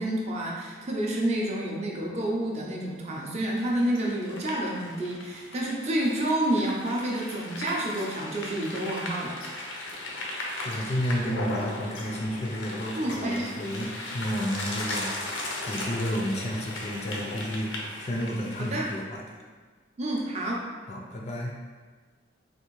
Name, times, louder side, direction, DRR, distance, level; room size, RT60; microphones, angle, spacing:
voice 1, 0.0-9.4 13.0-13.5 18.6-18.9 20.0-20.7, right 1 dB, 35° right, -2 dB, 0.5 m, -29 dB
sound 1, 3.6-19.0, left 1 dB, 90° left, 0.6 m, -37 dB
voice 2, 10.6-15.1 15.7-19.2 20.8-21.6, equal, 35° left, -1 dB, 0.4 m, -31 dB
3.4 x 2.5 x 3.0 m, 1.5 s
head